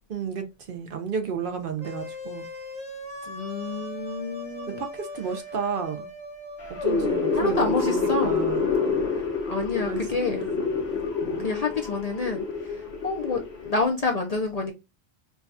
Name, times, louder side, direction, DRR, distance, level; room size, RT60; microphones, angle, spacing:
voice 1, 0.1-2.5 4.7-6.1 6.7-8.7 9.7-10.0 10.3-10.6 11.2-11.5, right 6 dB, 60° right, 0.7 m, -32 dB
sound 1, 1.8-8.0, left 1 dB, 5° left, 1.0 m, -39 dB
voice 2, 3.3-4.8 7.3-8.3 9.4-10.4 11.4-14.7, left 3 dB, 45° left, 0.5 m, -28 dB
sound 2, 6.6-13.8, left 4 dB, 70° left, 1.3 m, -27 dB
4.6 x 2.3 x 2.6 m
omnidirectional pair, 1.1 m